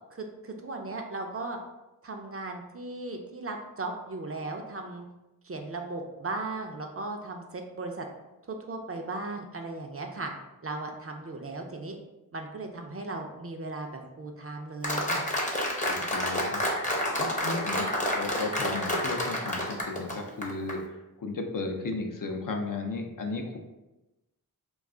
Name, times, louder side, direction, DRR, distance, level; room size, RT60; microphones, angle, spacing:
voice 1, 0.1-1.6 2.0-5.0 5.4-8.1 8.5-10.3 10.6-12.0 12.3-15.2, right 2 dB, 40° right, 3 dB, 0.4 m, -37 dB
Applause, 14.8-20.8, left 1 dB, 20° left, 0.6 m, -29 dB
voice 2, 15.9-16.6 17.2-17.9 18.1-20.8 21.2-23.6, left 3 dB, 60° left, 3 dB, 0.5 m, -34 dB
2.3 x 2.3 x 3.6 m, 1.0 s
wide cardioid pair, 45°, 37 cm